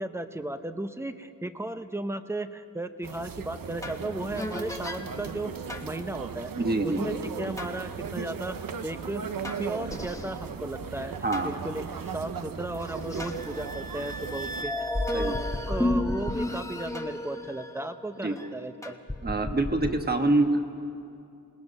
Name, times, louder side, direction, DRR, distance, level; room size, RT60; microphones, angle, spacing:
voice 1, 0.0-5.5 5.8-6.5 6.8-8.6 8.8-11.1 11.4-15.4 15.7-19.0, right 1 dB, 10° right, 9 dB, 0.8 m, -35 dB
sound 1, 3.0-14.6, right 6 dB, 80° right, 1.0 m, -37 dB
sound 2, 3.8-4.0 4.4-5.0 5.7-5.9 7.6-7.7 9.4-11.5 12.1-12.2 12.8-18.5 18.8-19.9, left 1 dB, 10° left, 1.2 m, -33 dB
voice 2, 6.6-7.0 11.2-11.5 15.1-15.4 18.2-18.3 19.2-20.7, right 2 dB, 30° right, 5 dB, 1.4 m, -25 dB
27.0 x 19.5 x 5.5 m, 2.5 s
wide cardioid pair, 130°, 34 cm